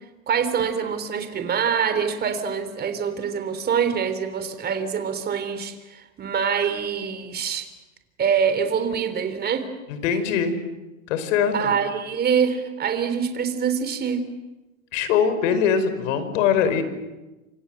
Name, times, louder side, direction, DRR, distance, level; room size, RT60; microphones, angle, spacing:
voice 1, 0.3-7.7 8.2-9.7 11.5-14.3, right 7 dB, 25° right, 9 dB, 3.5 m, -25 dB
voice 2, 9.9-10.5 11.1-11.7 14.9-16.8, left 7 dB, 65° left, 11 dB, 5.1 m, -22 dB
28.0 x 27.0 x 7.9 m, 1.1 s
supercardioid pair, 135°, 41 cm